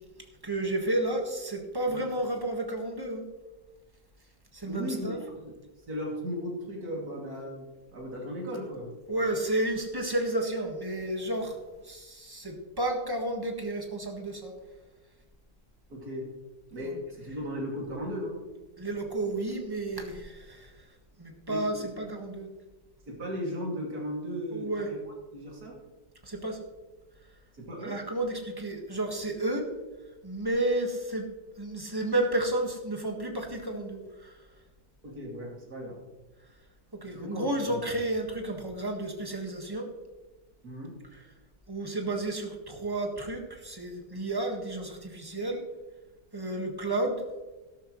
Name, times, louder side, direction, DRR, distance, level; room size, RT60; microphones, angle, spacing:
voice 1, 0.4-3.2 4.5-5.2 9.1-14.5 16.8-17.0 18.8-20.9 21.2-22.5 24.5-24.9 26.2-26.6 27.8-29.7 30.2-31.3 31.6-34.4 36.9-39.9 41.7-45.6 46.3-47.2, right 1 dB, 15° right, 2 dB, 1.5 m, -31 dB
voice 2, 4.7-5.5 5.9-9.0 15.9-16.3 16.7-18.4 21.5-21.9 23.1-25.0 25.3-25.8 27.6-28.0 35.0-36.0 37.0-37.8 40.6-41.0, equal, 55° right, -2 dB, 3.2 m, -36 dB
13.0 x 12.5 x 3.2 m, 1.1 s
omnidirectional pair, 1.9 m